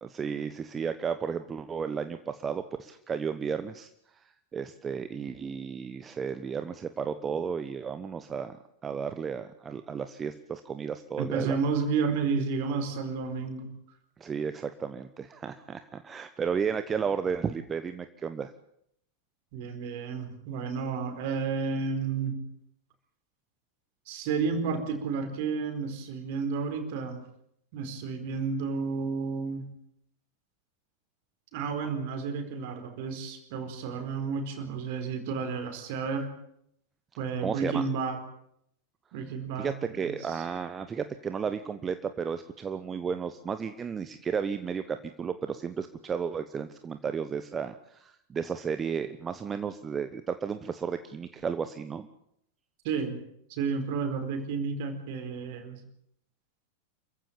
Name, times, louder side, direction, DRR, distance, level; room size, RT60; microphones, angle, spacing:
voice 1, 0.0-8.6 8.8-11.6 14.2-18.5 37.4-37.8 39.6-52.1, right 6 dB, 20° right, 10 dB, 1.0 m, -33 dB
voice 2, 11.2-13.7 19.5-22.4 24.1-27.2 27.7-29.7 31.5-36.3 37.2-38.2 39.1-40.2 52.8-53.2 53.5-55.8, right 5 dB, 50° right, 7 dB, 4.5 m, -31 dB
27.0 x 15.5 x 8.9 m, 0.74 s
figure-of-eight pair, 90°, 0 cm